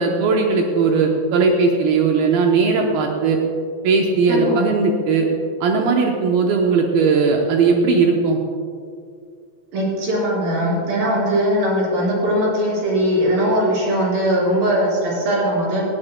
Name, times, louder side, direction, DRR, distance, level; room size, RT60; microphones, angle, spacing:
voice 1, 0.0-3.4 3.8-5.3 5.6-8.4, right 4 dB, 85° right, 1 dB, 2.1 m, -18 dB
voice 2, 9.7-15.8, equal, 50° right, -5 dB, 5.5 m, -20 dB
18.5 x 16.5 x 2.2 m, 2.3 s
omnidirectional pair, 5.5 m